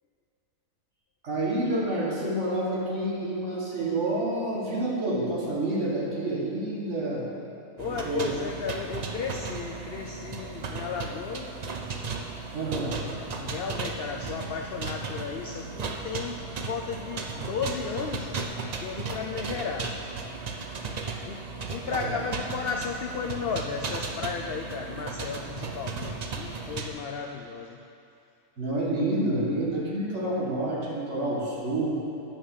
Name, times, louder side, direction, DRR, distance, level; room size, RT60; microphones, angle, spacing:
voice 1, 1.2-7.2 7.9-8.4 12.5-13.0 21.9-22.1 28.6-32.0, right 1 dB, 55° right, -5 dB, 1.9 m, -28 dB
voice 2, 7.8-11.6 12.7-12.8 13.3-18.3 18.8-20.0 21.2-21.4 21.7-27.8, left 5 dB, 75° left, 2 dB, 0.5 m, -34 dB
sound 1, 7.8-26.9, right 4 dB, 85° right, 0.3 m, -35 dB
8.8 x 5.2 x 7.0 m, 2.6 s
omnidirectional pair, 1.5 m